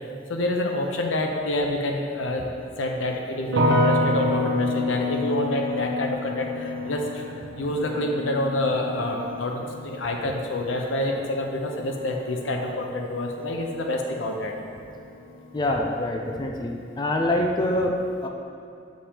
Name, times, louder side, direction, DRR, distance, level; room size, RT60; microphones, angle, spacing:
voice 1, 0.3-2.5 2.8-14.5, left 1 dB, 80° left, 2 dB, 0.7 m, -27 dB
sound 1, 3.5-14.6 14.9-15.6, left 1 dB, 65° right, 0.7 m, -29 dB
voice 2, 15.5-18.3, left 1 dB, 25° left, 1 dB, 0.4 m, -25 dB
6.7 x 5.2 x 2.9 m, 2.5 s
head